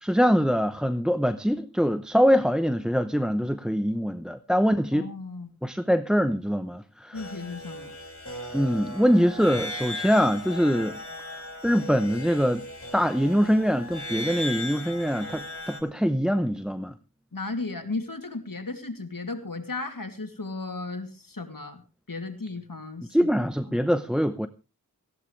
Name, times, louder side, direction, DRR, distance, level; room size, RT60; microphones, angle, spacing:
voice 1, 0.0-5.1 5.6-7.2 8.5-11.0 11.6-12.7 12.9-16.9 23.1-24.5, equal, ahead, 0.7 m, -23 dB
voice 2, 4.9-5.5 7.1-8.0 17.3-23.3, left 3 dB, 65° left, 2.6 m, -35 dB
sound 1, 7.1-15.8, left 1 dB, 40° left, 5.0 m, -37 dB
18.5 x 15.5 x 3.2 m
wide cardioid pair, 40°, 36 cm